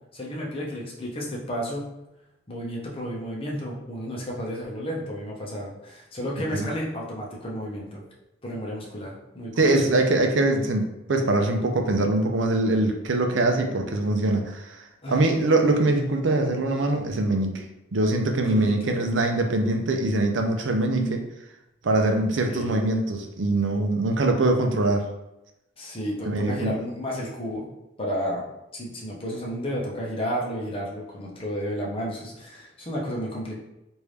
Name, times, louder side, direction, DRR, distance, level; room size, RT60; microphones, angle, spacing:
voice 1, 0.1-1.9 2.5-8.0 8.4-9.9 15.0-15.5 18.4-18.9 22.5-22.8 25.8-27.7 28.0-28.4 28.7-33.6, equal, 30° left, -3 dB, 0.8 m, -32 dB
voice 2, 9.6-17.6 17.9-21.2 21.8-25.0 26.3-26.7, right 2 dB, 85° right, 4 dB, 0.5 m, -23 dB
3.3 x 2.6 x 3.2 m, 0.92 s
head